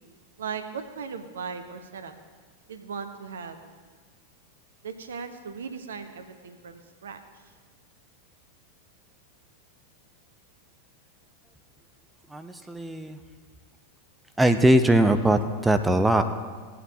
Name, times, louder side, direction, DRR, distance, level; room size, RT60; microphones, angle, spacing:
voice 1, 0.4-2.1 2.7-3.6 4.8-7.2, right 6 dB, 65° right, 8 dB, 0.8 m, -37 dB
voice 2, 12.3-13.2 14.4-16.2, right 1 dB, 5° right, 8 dB, 0.5 m, -21 dB
17.0 x 8.5 x 2.7 m, 1.5 s
figure-of-eight pair, 90°, 0 cm